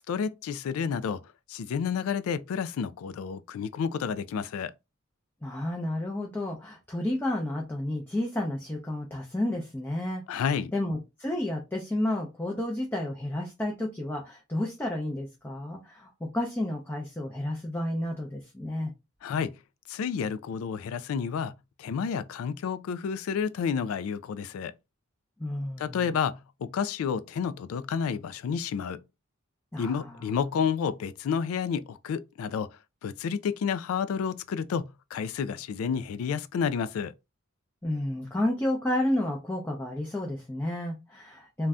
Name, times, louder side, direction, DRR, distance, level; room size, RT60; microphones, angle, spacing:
voice 1, 0.1-1.2 1.5-4.7 10.3-10.7 19.2-19.5 19.9-21.5 21.8-24.7 25.8-29.0 29.8-32.7 33.0-37.1, left 6 dB, 75° left, 0.3 m, -30 dB
voice 2, 5.4-10.4 10.7-18.9 25.4-26.0 29.7-30.2 37.8-41.7, left 1 dB, 10° left, 0.5 m, -31 dB
2.5 x 2.2 x 3.4 m
head